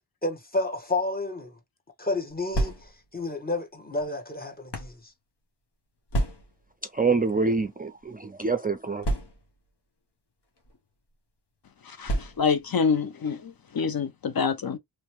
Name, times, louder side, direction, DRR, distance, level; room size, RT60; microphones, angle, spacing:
voice 1, 0.2-1.6 2.0-5.1, left 2 dB, 20° left, 1.1 m, -31 dB
sound 1, 2.3-3.2 4.0-5.0 6.1-6.7 7.6-7.8 8.0-8.1 9.0-9.7 10.6-10.8 12.0-12.7, right 1 dB, 85° left, 1.2 m, -30 dB
voice 2, 6.9-9.1, right 4 dB, 25° right, 0.4 m, -26 dB
voice 3, 12.0-13.4 13.7-14.8, left 5 dB, 60° left, 0.6 m, -26 dB
3.1 x 2.9 x 3.1 m
wide cardioid pair, 70°, 40 cm